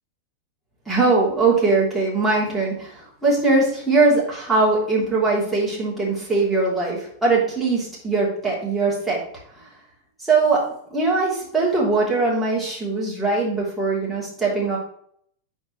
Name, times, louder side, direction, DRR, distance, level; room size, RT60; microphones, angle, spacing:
voice 1, 0.9-9.2 9.6-9.7 10.2-14.8, right 3 dB, 5° right, -7 dB, 3.1 m, -21 dB
8.4 x 4.7 x 3.2 m, 0.64 s
figure-of-eight pair, 90°, 0 cm